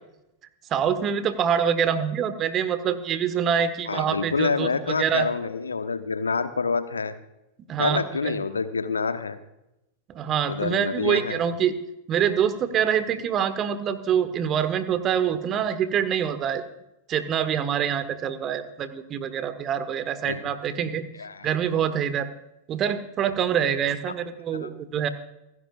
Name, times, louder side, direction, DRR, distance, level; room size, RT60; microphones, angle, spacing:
voice 1, 0.7-5.3 7.7-8.4 10.1-11.8 12.1-16.6 17.1-21.0 21.4-22.3 22.7-25.1, right 8 dB, 30° right, 11 dB, 1.4 m, -25 dB
voice 2, 3.9-7.1 7.8-9.4 10.5-11.4 20.2-20.5 21.2-21.5 24.5-24.7, left 4 dB, 75° left, 10 dB, 1.1 m, -27 dB
28.0 x 11.0 x 2.5 m, 0.90 s
figure-of-eight pair, 90°, 0 cm